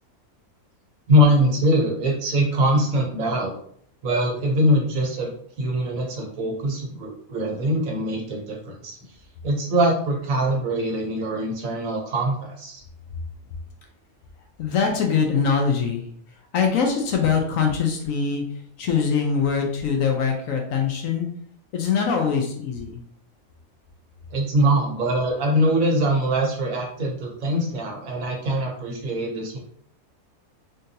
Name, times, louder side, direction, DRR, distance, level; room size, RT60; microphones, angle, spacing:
voice 1, 1.1-3.6 4.0-5.3 5.6-9.0 9.4-12.8 24.3-29.6, equal, 65° right, 0 dB, 1.1 m, -22 dB
voice 2, 14.6-16.1 16.5-18.4 18.8-21.3 21.7-23.0, left 6 dB, 70° left, 2 dB, 0.9 m, -23 dB
3.7 x 2.6 x 2.7 m, 0.63 s
omnidirectional pair, 1.6 m